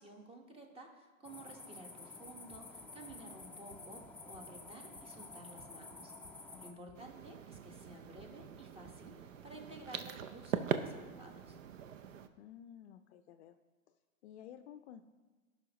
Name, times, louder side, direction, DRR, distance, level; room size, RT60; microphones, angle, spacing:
voice 1, 0.0-11.6, right 1 dB, 15° right, 3 dB, 1.4 m, -53 dB
sound 1, 1.2-6.7, left 3 dB, 5° left, 0.5 m, -51 dB
Run, 2.2-11.7, right 3 dB, 30° right, 1.3 m, -64 dB
voice 2, 6.5-7.0 12.4-13.6 14.2-15.0, left 10 dB, 50° left, 10 dB, 0.5 m, -53 dB
sound 2, 6.9-12.3, right 8 dB, 65° right, 0.7 m, -42 dB
16.5 x 5.6 x 3.0 m, 1.3 s
hypercardioid pair, 105°, 42 cm